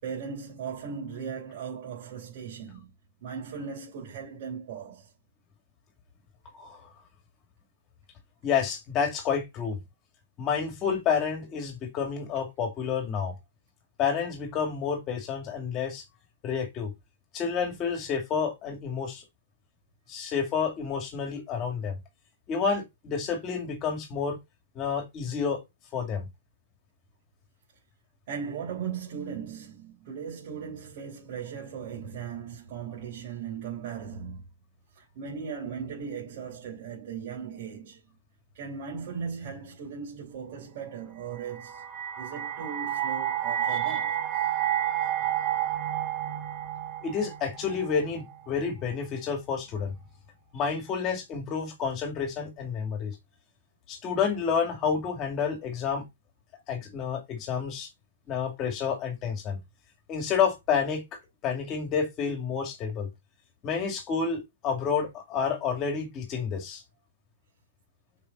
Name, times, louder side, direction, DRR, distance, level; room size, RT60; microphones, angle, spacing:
voice 1, 0.0-2.9 3.2-5.1 28.3-34.4 34.9-38.0 38.5-44.2, right 6 dB, 45° right, 3.4 m, -38 dB
voice 2, 8.4-9.8 10.4-13.3 14.0-16.0 16.4-16.9 17.3-19.2 20.1-22.0 22.5-24.4 24.7-25.6 25.9-26.3 43.7-43.8 45.0-45.1 47.0-49.9 50.5-53.2 53.9-56.0 56.7-57.9 58.3-59.6 60.1-63.1 63.6-66.8, left 6 dB, 20° left, 2.3 m, -29 dB
sound 1, 41.4-48.5, right 11 dB, 15° right, 1.0 m, -30 dB
6.9 x 5.3 x 4.2 m
hypercardioid pair, 170°, 0 cm